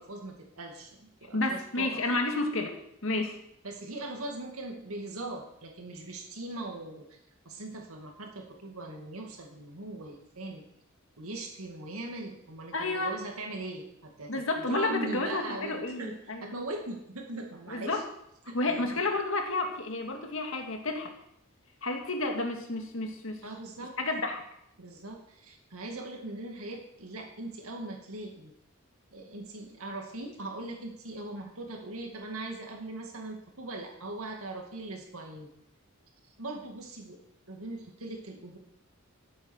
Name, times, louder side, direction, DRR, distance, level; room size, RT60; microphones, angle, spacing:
voice 1, 0.0-2.0 3.6-7.1 7.5-10.7 11.2-18.0 18.5-19.0 23.4-23.9 24.8-28.5 29.1-35.5 36.4-37.2 37.5-38.6, right 2 dB, 90° right, 2 dB, 2.2 m, -40 dB
voice 2, 1.3-3.4 12.7-13.1 14.3-16.5 17.7-18.0 18.5-21.1 21.8-23.4 24.0-24.4, left 2 dB, 65° left, 3 dB, 2.0 m, -31 dB
12.5 x 8.3 x 6.4 m, 0.77 s
head